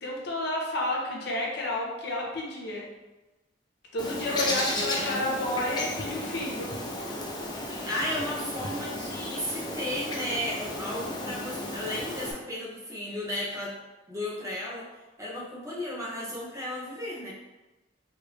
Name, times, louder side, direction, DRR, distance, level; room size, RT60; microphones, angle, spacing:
voice 1, 0.0-2.8 3.9-6.7, left 1 dB, 60° left, -2 dB, 0.7 m, -31 dB
Bird, 4.0-12.3, left 1 dB, 20° left, 0.4 m, -34 dB
voice 2, 4.3-5.3 7.9-13.8 14.1-14.9 15.2-17.3, left 1 dB, 15° right, -5 dB, 0.7 m, -34 dB
3.3 x 2.5 x 3.1 m, 1.1 s
head